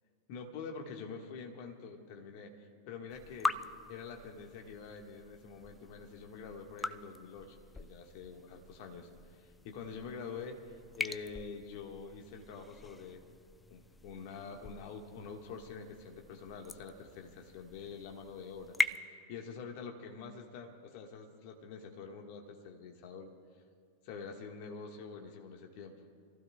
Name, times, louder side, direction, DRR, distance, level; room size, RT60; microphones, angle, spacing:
voice 1, 0.3-3.6 3.9-9.1 9.4-13.2 13.7-18.8 19.1-23.3 24.0-26.0, left 5 dB, 45° left, 2 dB, 1.7 m, -46 dB
sound 1, 3.1-19.0, left 3 dB, 10° left, 0.4 m, -42 dB
28.5 x 15.0 x 2.4 m, 2.1 s
figure-of-eight pair, 90°, 0 cm